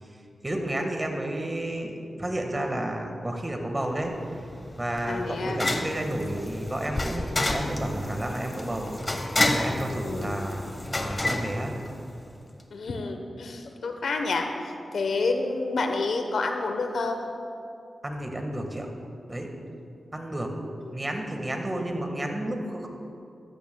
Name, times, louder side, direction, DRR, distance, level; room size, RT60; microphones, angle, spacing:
voice 1, 0.4-4.1 4.8-9.2 9.5-11.7 18.0-18.9 19.3-19.5 20.1-20.5 20.9-22.9, right 1 dB, 25° right, 3 dB, 1.6 m, -31 dB
sound 1, 4.0-12.4, left 1 dB, 30° left, 0.9 m, -30 dB
voice 2, 5.1-5.6 10.0-10.4 12.7-17.3 20.8-21.0, left 3 dB, 80° left, 5 dB, 0.9 m, -29 dB
14.0 x 12.5 x 2.3 m, 2.5 s
cardioid pair, 55°, 0 cm